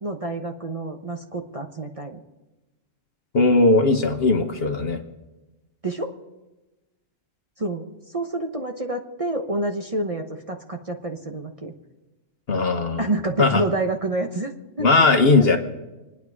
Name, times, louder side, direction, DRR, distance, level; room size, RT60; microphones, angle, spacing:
voice 1, 0.0-2.2 5.8-6.1 7.6-11.7 13.0-14.5 14.8-14.9 15.2-15.6, right 2 dB, 30° right, 3 dB, 1.0 m, -28 dB
voice 2, 3.3-5.0 12.5-13.0 13.4-13.6 14.8-15.6, left 3 dB, 50° left, 5 dB, 1.4 m, -18 dB
27.5 x 9.6 x 4.8 m, 1.1 s
omnidirectional pair, 1.4 m